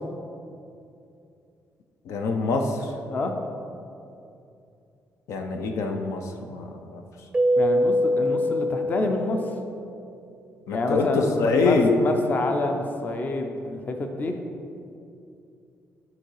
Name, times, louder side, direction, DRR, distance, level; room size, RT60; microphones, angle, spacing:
voice 1, 2.1-2.9 5.3-7.0 10.7-11.9, left 3 dB, 75° left, 4 dB, 0.6 m, -25 dB
Keyboard (musical), 7.3-9.9, equal, 15° right, 0.5 m, -24 dB
voice 2, 7.6-9.6 10.7-14.3, left 2 dB, 35° left, 4 dB, 0.6 m, -28 dB
10.5 x 3.9 x 4.7 m, 2.6 s
cardioid pair, 140°, 5 cm